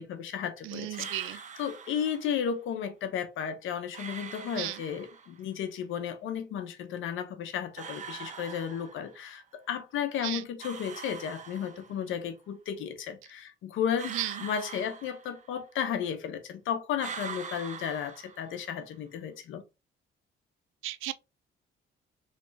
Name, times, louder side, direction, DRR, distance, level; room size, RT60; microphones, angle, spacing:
voice 1, 0.0-19.6, left 8 dB, 80° left, 0.8 m, -34 dB
voice 2, 0.6-1.4 4.5-4.8 10.2-10.5 14.1-14.4 20.8-21.1, right 15 dB, 90° right, 0.4 m, -34 dB
sound 1, 0.9-2.4 3.9-5.4 7.8-9.3 10.6-12.1 14.0-15.7 17.0-18.8, right 6 dB, 40° right, 0.7 m, -43 dB
3.4 x 3.3 x 2.8 m
cardioid pair, 90°, 20 cm